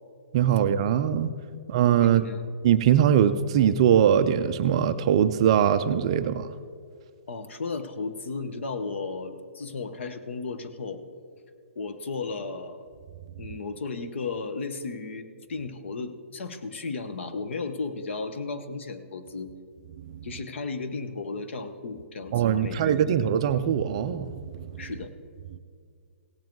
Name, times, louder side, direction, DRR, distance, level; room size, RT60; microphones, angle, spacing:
voice 1, 0.3-1.3 1.7-2.2 2.6-6.5 22.3-24.3 24.5-24.8, right 9 dB, 25° right, 0.3 m, -21 dB
voice 2, 2.0-2.5 7.3-11.0 11.7-12.9 13.4-19.5 20.2-23.2 24.8-25.1, left 4 dB, 60° left, 1.0 m, -34 dB
17.0 x 7.4 x 4.6 m
hypercardioid pair, 175°, 7 cm